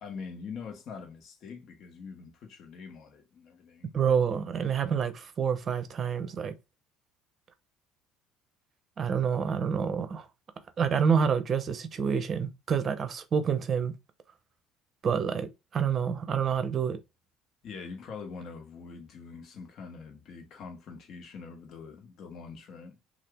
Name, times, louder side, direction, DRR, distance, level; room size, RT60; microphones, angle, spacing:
voice 1, 0.0-3.9 17.6-23.0, left 5 dB, 55° left, 1.1 m, -44 dB
voice 2, 3.9-6.5 9.0-10.3 10.8-13.9 15.0-17.0, right 7 dB, 45° right, 0.6 m, -28 dB
2.8 x 2.4 x 3.5 m
hypercardioid pair, 65°, 0 cm